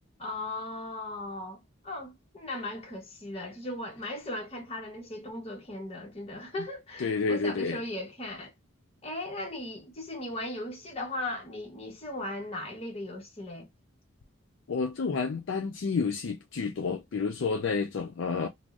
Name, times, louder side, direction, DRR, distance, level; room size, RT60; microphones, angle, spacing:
voice 1, 0.2-8.5 9.0-13.7, left 1 dB, 30° left, 0.9 m, -37 dB
voice 2, 7.0-7.8 14.7-18.5, left 4 dB, 65° left, 0.4 m, -30 dB
2.6 x 2.0 x 3.4 m
head